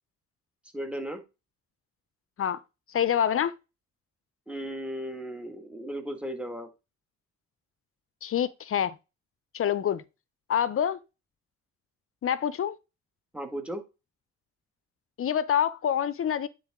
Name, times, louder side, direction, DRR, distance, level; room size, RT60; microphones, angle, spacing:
voice 1, 0.7-1.2 4.5-6.7 13.3-13.8, right 1 dB, 5° right, 1.7 m, -35 dB
voice 2, 2.9-3.5 8.2-8.9 9.5-10.0 10.5-11.0 12.2-12.8 15.2-16.5, left 9 dB, 45° left, 0.6 m, -26 dB
9.8 x 3.8 x 3.6 m
cardioid pair, 90°, 30 cm